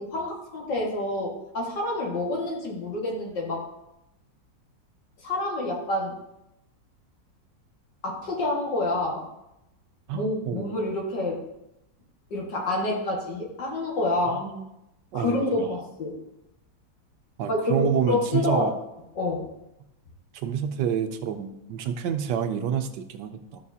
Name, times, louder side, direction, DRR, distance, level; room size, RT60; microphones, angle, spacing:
voice 1, 0.0-3.6 5.2-6.1 8.0-9.3 10.1-11.4 12.3-14.4 15.1-16.1 17.5-18.7 19.2-19.5, left 2 dB, 70° left, -2 dB, 2.5 m, -28 dB
voice 2, 10.1-10.8 14.3-14.6 15.1-15.7 17.4-18.7 20.3-23.6, right 8 dB, 75° right, 8 dB, 1.2 m, -28 dB
12.5 x 7.0 x 2.8 m, 0.88 s
omnidirectional pair, 2.0 m